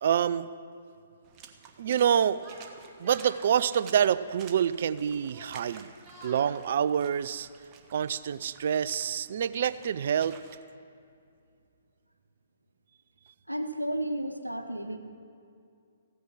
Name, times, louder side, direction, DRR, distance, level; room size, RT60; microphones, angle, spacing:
voice 1, 0.0-0.5 1.8-2.4 3.0-5.9 6.2-7.5 7.9-10.4, right 8 dB, 50° right, 16 dB, 0.4 m, -27 dB
Water / Splash splatter, 1.2-10.6, right 6 dB, 25° right, 0.9 m, -52 dB
Yell, 2.3-3.4 4.5-4.9 5.2-6.5, right 1 dB, 5° right, 3.3 m, -50 dB
voice 2, 13.5-15.0, right 1 dB, 90° right, 7 dB, 1.0 m, -32 dB
15.0 x 9.3 x 6.3 m, 2.4 s
figure-of-eight pair, 125°, 0 cm